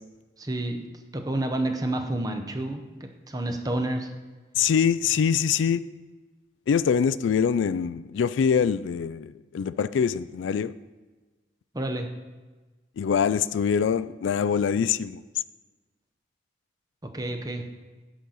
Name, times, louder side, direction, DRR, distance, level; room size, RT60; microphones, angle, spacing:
voice 1, 0.4-0.8 1.1-2.8 3.3-4.1 11.7-12.1 17.1-17.6, right 1 dB, 20° right, 5 dB, 0.8 m, -29 dB
voice 2, 4.6-5.8 6.7-10.7 13.0-15.2, left 7 dB, 85° left, 15 dB, 0.3 m, -24 dB
10.0 x 4.1 x 6.4 m, 1.3 s
head